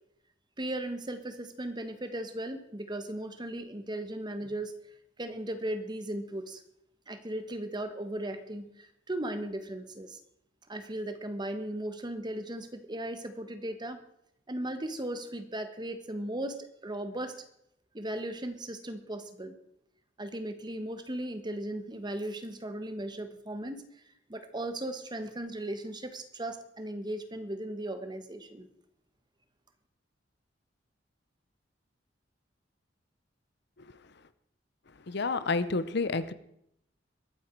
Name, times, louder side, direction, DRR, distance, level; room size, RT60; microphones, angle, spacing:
voice 1, 0.6-4.7 5.2-6.6 7.1-10.2 10.7-14.0 14.5-17.4 17.9-19.5 20.2-23.8 24.3-28.7, right 1 dB, 25° right, 9 dB, 1.3 m, -37 dB
voice 2, 35.1-36.3, left 3 dB, 60° left, 13 dB, 0.8 m, -29 dB
22.0 x 9.1 x 4.6 m, 0.76 s
head